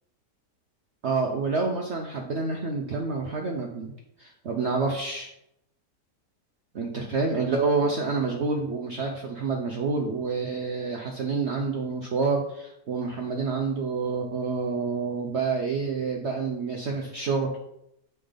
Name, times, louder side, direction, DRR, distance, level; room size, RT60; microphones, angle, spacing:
voice 1, 1.0-3.9 4.2-5.3 6.7-17.6, right 4 dB, 55° right, 1 dB, 0.8 m, -28 dB
8.0 x 3.8 x 5.1 m, 0.81 s
omnidirectional pair, 1.8 m